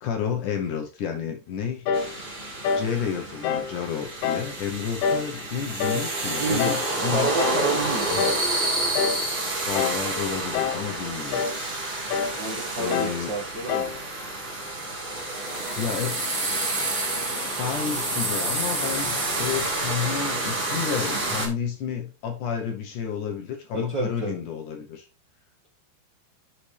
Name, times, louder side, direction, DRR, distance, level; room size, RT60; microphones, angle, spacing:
voice 1, 0.0-1.9 2.8-7.3 8.1-8.3 9.7-11.5 12.8-13.3 15.8-16.2 17.6-25.1, left 7 dB, 70° left, 3 dB, 2.2 m, -31 dB
sound 1, 1.9-2.1 2.6-2.9 3.4-3.7 4.2-4.5 5.0-5.3 5.8-6.1 6.6-6.9 7.4-7.7 8.2-8.5 8.9-9.2 9.7-10.1 10.5-10.9 11.3-11.6 12.1-12.4 12.9-13.2 13.7-14.0, left 6 dB, 90° left, 2.7 m, -26 dB
sound 2, 1.9-21.5, right 2 dB, 25° right, 1.2 m, -29 dB
voice 2, 6.2-8.5 12.4-14.0 23.7-24.4, right 2 dB, 70° right, -1 dB, 1.0 m, -30 dB
10.0 x 4.3 x 3.3 m, 0.31 s
omnidirectional pair, 4.4 m